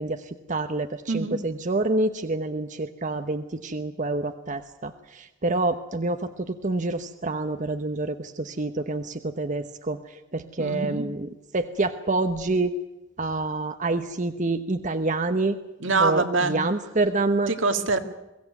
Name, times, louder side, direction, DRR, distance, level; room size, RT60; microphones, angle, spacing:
voice 1, 0.0-11.3 11.5-12.7 13.2-15.6 16.0-17.5, right 2 dB, 40° right, 8 dB, 1.0 m, -27 dB
voice 2, 1.1-1.4 10.6-11.1 15.8-16.5 17.5-18.0, right 3 dB, 75° right, 7 dB, 2.1 m, -24 dB
23.0 x 16.5 x 9.3 m, 1.0 s
head